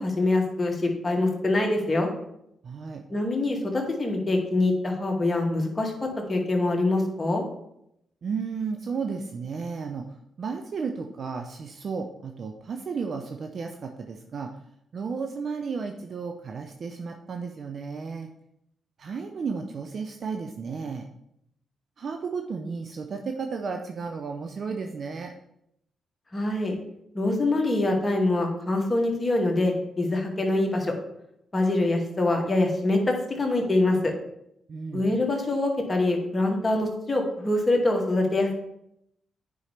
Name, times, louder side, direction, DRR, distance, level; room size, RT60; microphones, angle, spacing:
voice 1, 0.0-2.1 3.1-7.4 26.3-26.8 27.1-31.0 31.5-34.1 34.9-38.6, left 2 dB, 30° left, 1 dB, 2.0 m, -24 dB
voice 2, 2.6-3.0 8.2-14.5 14.9-18.3 19.0-21.1 22.0-25.3 34.7-35.1, right 5 dB, 60° right, 4 dB, 0.6 m, -33 dB
9.1 x 5.5 x 3.3 m, 0.78 s
hypercardioid pair, 40°, 0 cm